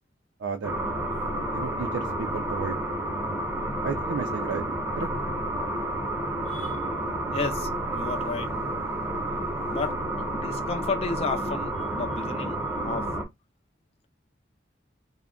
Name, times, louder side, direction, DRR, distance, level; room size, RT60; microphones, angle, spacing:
voice 1, 0.4-0.7 1.5-2.8 3.8-4.6 5.0-5.1, right 5 dB, 80° right, 0.4 m, -32 dB
sound 1, 0.6-13.3, right 1 dB, 15° right, 0.7 m, -30 dB
voice 2, 7.3-8.5 9.7-13.1, left 4 dB, 35° left, 0.4 m, -33 dB
2.2 x 2.0 x 3.6 m
head